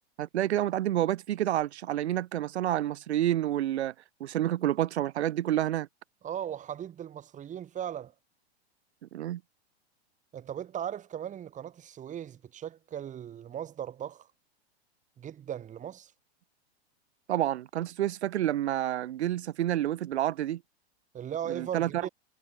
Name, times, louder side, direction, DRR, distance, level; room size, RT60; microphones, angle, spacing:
voice 1, 0.2-3.9 4.2-5.9 9.1-9.4 17.3-20.6 21.5-22.1, right 12 dB, 85° right, 1.1 m, -29 dB
voice 2, 6.2-8.1 10.3-14.3 15.2-16.1 21.1-22.1, right 10 dB, 25° right, 2.2 m, -38 dB
hypercardioid pair, 130°, 33 cm